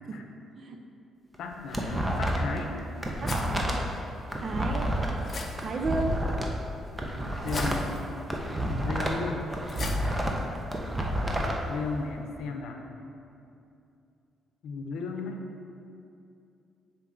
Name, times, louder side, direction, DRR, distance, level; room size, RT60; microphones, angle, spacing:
sound 1, 1.3-2.6 2.9-6.5 6.9-9.2 9.5-11.5, equal, 15° right, 0.8 m, -29 dB
voice 1, 1.4-2.8 7.2-7.9 8.7-9.4 11.3-12.8 14.6-15.4, left 4 dB, 80° left, 3 dB, 0.6 m, -35 dB
voice 2, 3.2-3.9 4.4-4.9 5.6-6.2, right 3 dB, 50° right, 4 dB, 0.5 m, -33 dB
sound 2, 3.3-10.8, left 3 dB, 40° left, 0.6 m, -43 dB
7.4 x 4.5 x 3.7 m, 2.6 s
cardioid pair, 90°, 0 cm